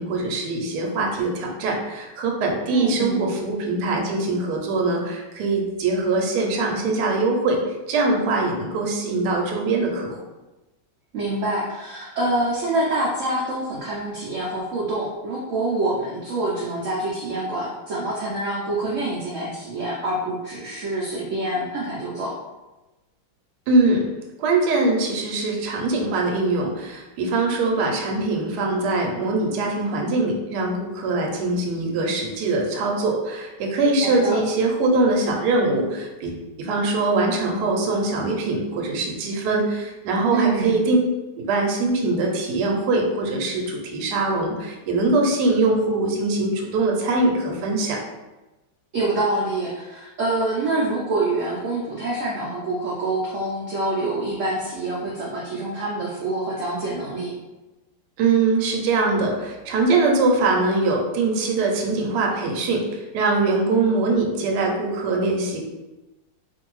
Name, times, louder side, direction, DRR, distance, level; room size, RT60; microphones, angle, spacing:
voice 1, 0.0-7.6 7.9-10.2 23.7-24.1 24.4-41.0 41.4-48.0 58.2-62.8 63.1-65.6, right 3 dB, 70° right, 0 dB, 1.1 m, -22 dB
voice 2, 2.7-3.3 11.1-22.3 34.0-34.4 40.3-40.8 48.9-57.3, right 2 dB, 85° right, -5 dB, 0.6 m, -26 dB
2.6 x 2.6 x 3.0 m, 1.1 s
omnidirectional pair, 2.0 m